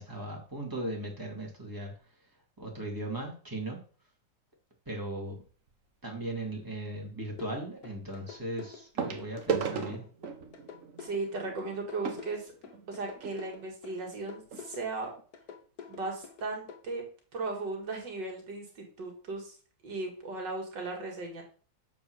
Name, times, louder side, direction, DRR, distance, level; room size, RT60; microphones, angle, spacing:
voice 1, 0.0-1.9 2.6-3.8 4.9-5.4 6.0-10.0, right 1 dB, 10° right, -1 dB, 2.5 m, -38 dB
sound 1, 5.4-5.7 7.4-7.5 9.0-13.4 14.2-14.3 14.5-14.6 15.2-15.3, right 6 dB, 50° right, 1.2 m, -36 dB
sound 2, 7.4-16.8, left 7 dB, 60° left, 1.5 m, -47 dB
voice 2, 11.0-12.5 12.9-15.1 15.9-17.0 17.3-19.5 19.8-21.4, right 3 dB, 75° right, 2 dB, 2.6 m, -36 dB
6.8 x 4.9 x 6.4 m, 0.41 s
omnidirectional pair, 2.0 m